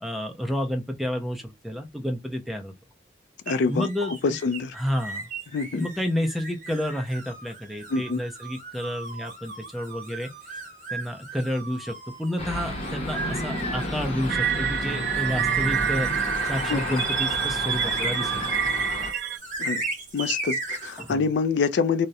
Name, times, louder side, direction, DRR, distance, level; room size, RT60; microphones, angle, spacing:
voice 1, 0.0-2.7 3.7-4.4 4.7-5.3 5.7-10.6 10.9-16.1 16.5-18.4 21.0-21.3, equal, ahead, 0.5 m, -30 dB
voice 2, 3.5-3.9 4.2-4.7 5.5-5.9 7.9-8.2 16.7-16.8 19.6-19.8 20.1-22.1, left 5 dB, 75° left, 0.3 m, -25 dB
sound 1, 3.5-21.1, right 2 dB, 45° right, 0.9 m, -37 dB
sound 2, 12.4-19.1, left 1 dB, 35° left, 0.7 m, -32 dB
sound 3, 14.3-19.4, right 9 dB, 70° right, 0.3 m, -27 dB
2.3 x 2.0 x 2.7 m
head